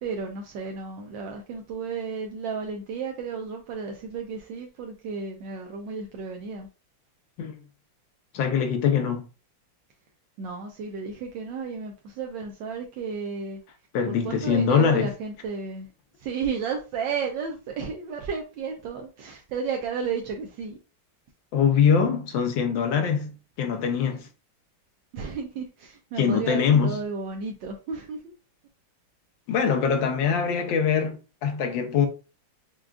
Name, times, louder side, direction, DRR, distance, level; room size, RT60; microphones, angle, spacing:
voice 1, 0.0-6.7 10.4-13.6 14.1-15.9 16.2-20.8 25.1-28.3, right 5 dB, 75° right, 1.3 m, -33 dB
voice 2, 8.3-9.3 13.9-15.1 21.5-24.3 26.2-27.0 29.5-32.1, left 7 dB, 75° left, 1.4 m, -23 dB
6.1 x 2.3 x 2.3 m
omnidirectional pair, 2.1 m